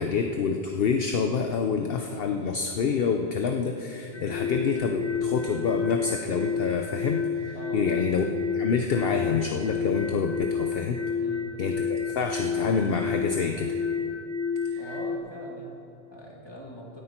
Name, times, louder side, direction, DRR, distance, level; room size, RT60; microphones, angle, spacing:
voice 1, 0.0-8.3 8.5-11.0 11.6-13.8, left 5 dB, 60° left, 5 dB, 0.9 m, -27 dB
sound 1, 4.1-15.2, left 5 dB, 85° left, 1.5 m, -30 dB
voice 2, 7.5-7.9 11.2-11.5 14.8-17.0, equal, 25° left, -3 dB, 2.2 m, -42 dB
16.5 x 10.0 x 4.4 m, 2.6 s
omnidirectional pair, 1.1 m